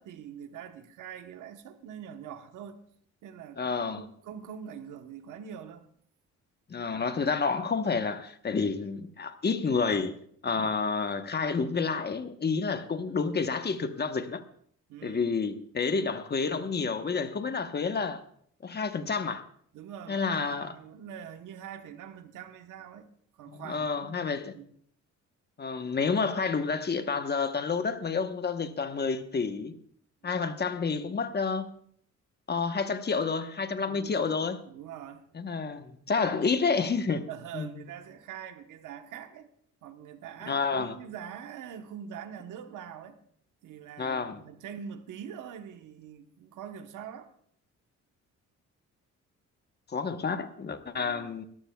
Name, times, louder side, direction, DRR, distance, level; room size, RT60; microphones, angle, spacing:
voice 1, 0.0-2.8 3.2-5.8 14.9-15.4 19.7-23.1 23.3-24.7 30.2-30.4 33.9-34.2 34.6-35.3 37.3-39.5 39.8-43.2 43.6-47.3 50.9-51.3, right 8 dB, 85° right, 1.1 m, -44 dB
voice 2, 3.6-4.0 6.7-10.1 10.4-14.4 15.0-18.2 18.6-19.4 20.1-20.7 23.5-24.5 25.6-29.8 30.2-31.7 32.5-34.6 35.3-37.2 37.5-37.7 40.5-41.0 44.0-44.4 49.9-51.4, left 5 dB, 35° left, 1.1 m, -29 dB
21.5 x 14.0 x 2.3 m
cardioid pair, 100°, 30 cm